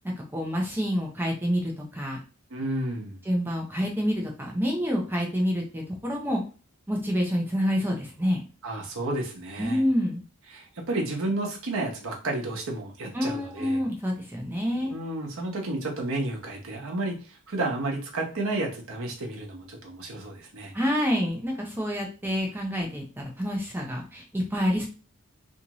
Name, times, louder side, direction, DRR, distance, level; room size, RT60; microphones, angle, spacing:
voice 1, 0.0-2.2 3.3-6.4 6.9-8.4 9.6-10.2 13.1-15.0 20.7-24.9, equal, 10° right, 0 dB, 0.5 m, -27 dB
voice 2, 2.5-3.2 8.6-9.8 10.5-13.8 14.9-20.7, right 2 dB, 65° right, 0 dB, 0.8 m, -31 dB
2.6 x 2.5 x 2.9 m, 0.36 s
head